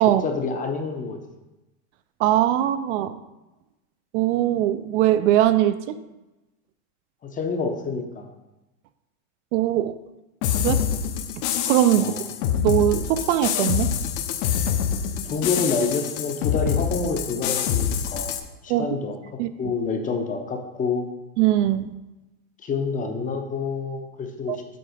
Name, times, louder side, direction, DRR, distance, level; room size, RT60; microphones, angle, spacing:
voice 1, 0.0-1.2 7.2-8.3 12.0-12.2 15.2-18.4 18.6-19.2 19.6-21.1 22.6-24.6, left 4 dB, 20° left, 5 dB, 0.6 m, -27 dB
voice 2, 2.2-3.2 4.1-6.0 9.5-10.0 10.5-10.8 11.7-12.1 12.6-13.9 18.7-18.9 19.4-19.7 21.4-21.9 24.5-24.6, right 13 dB, 60° right, 12 dB, 0.5 m, -21 dB
sound 1, 10.4-18.4, left 8 dB, 55° left, 0.8 m, -26 dB
7.9 x 3.8 x 4.9 m, 1.0 s
supercardioid pair, 130°, 42 cm